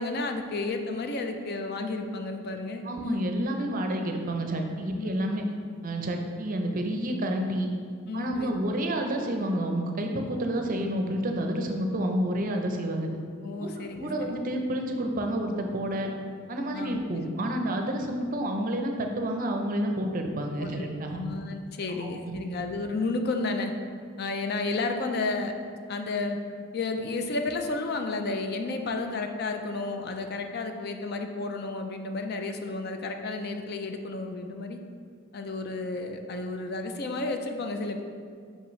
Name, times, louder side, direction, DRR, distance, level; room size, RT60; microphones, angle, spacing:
voice 1, 0.0-3.2 4.9-5.1 8.1-8.6 13.4-14.4 16.7-17.2 20.6-20.9 21.2-23.7 24.2-25.5 25.9-26.4 26.7-34.8 35.3-38.0, left 3 dB, 50° left, 5 dB, 0.5 m, -32 dB
voice 2, 2.8-5.4 5.8-7.7 8.1-13.1 13.6-16.1 16.5-21.3 22.0-22.4, right 1 dB, 40° right, 3 dB, 0.5 m, -29 dB
5.9 x 5.6 x 3.1 m, 2.1 s
head